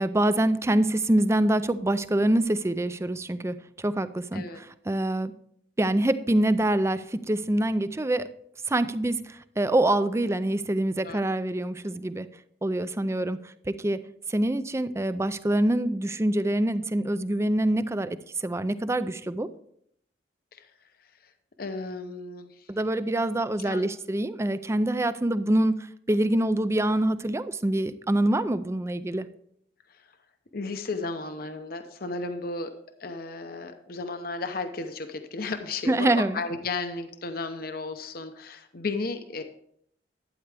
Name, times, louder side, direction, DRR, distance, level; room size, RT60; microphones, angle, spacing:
voice 1, 0.0-5.3 5.8-8.2 8.7-12.3 12.6-13.4 13.7-14.0 14.3-19.5 22.7-29.3 35.9-36.4, right 1 dB, 15° right, 13 dB, 0.4 m, -25 dB
voice 2, 21.6-22.7 23.6-23.9 29.9-30.0 30.5-32.7 33.0-39.4, left 3 dB, 55° left, 8 dB, 0.8 m, -34 dB
12.0 x 9.3 x 3.4 m, 0.69 s
head